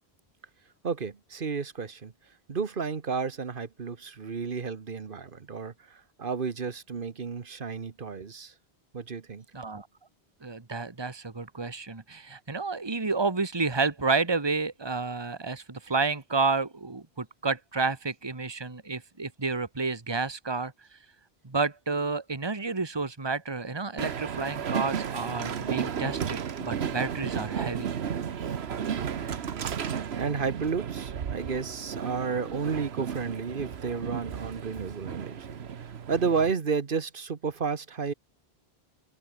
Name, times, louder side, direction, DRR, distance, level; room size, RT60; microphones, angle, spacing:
voice 1, 0.8-2.1 2.5-8.5 8.9-9.4 28.4-28.5 30.2-38.1, right 5 dB, 55° right, 1.4 m, -32 dB
voice 2, 9.5-9.9 10.4-20.7 21.4-27.9, right 4 dB, 25° right, 1.6 m, -30 dB
Train, 24.0-36.5, right 7 dB, 85° right, 1.3 m, -34 dB
omnidirectional pair, 1.0 m